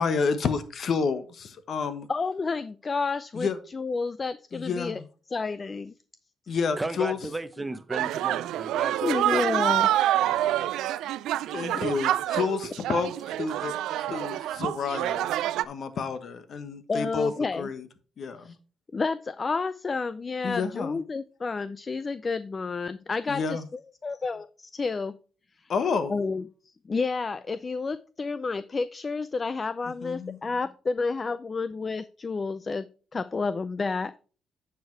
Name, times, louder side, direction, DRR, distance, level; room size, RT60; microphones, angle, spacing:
voice 1, 0.0-2.1 3.3-3.6 4.5-5.1 6.5-7.2 11.5-15.3 15.6-17.3 17.6-17.9 18.2-18.5 20.4-21.0 23.3-23.7 25.7-26.2 30.0-30.4, left 5 dB, 55° left, 11 dB, 1.1 m, -29 dB
voice 2, 2.1-5.0 5.3-5.9 9.0-9.9 11.7-11.8 16.9-17.7 18.4-18.6 18.9-23.6 24.0-25.1 26.1-32.9 33.1-34.1, left 4 dB, 35° left, 15 dB, 0.4 m, -30 dB
voice 3, 6.7-9.8 10.2-10.7, right 2 dB, 15° right, 12 dB, 0.7 m, -36 dB
sound 1, 7.9-15.7, right 13 dB, 85° right, 0.3 m, -27 dB
9.1 x 4.8 x 4.6 m, 0.39 s
cardioid pair, 90°, 0 cm